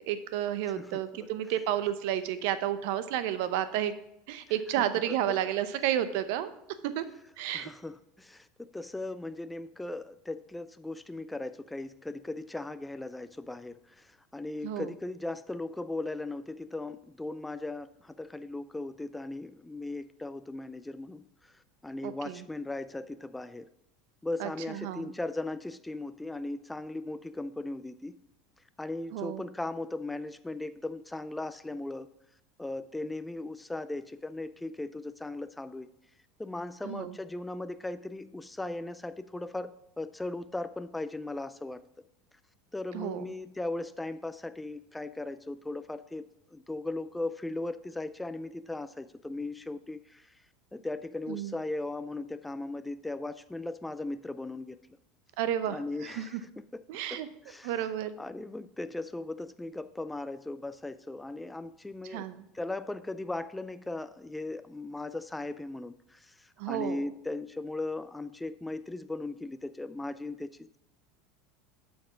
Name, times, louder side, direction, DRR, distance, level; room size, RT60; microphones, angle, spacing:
voice 1, 0.1-3.9 4.3-6.5 6.8-7.0 7.4-7.7 14.6-14.9 22.0-22.4 24.4-25.1 29.1-29.4 36.8-37.1 42.9-43.3 51.3-51.5 55.4-56.4 56.9-57.3 57.6-58.1 62.1-62.4 66.6-67.1, right 11 dB, 70° right, 13 dB, 0.7 m, -31 dB
voice 2, 7.5-23.7 24.2-28.2 28.8-32.1 32.6-35.9 36.4-41.8 42.7-50.4 50.7-54.8 55.7-56.8 57.1-57.2 57.4-57.9 58.2-62.3 62.5-70.8, left 2 dB, 10° left, 12 dB, 0.3 m, -38 dB
7.7 x 5.2 x 6.0 m, 0.79 s
supercardioid pair, 115°, 0 cm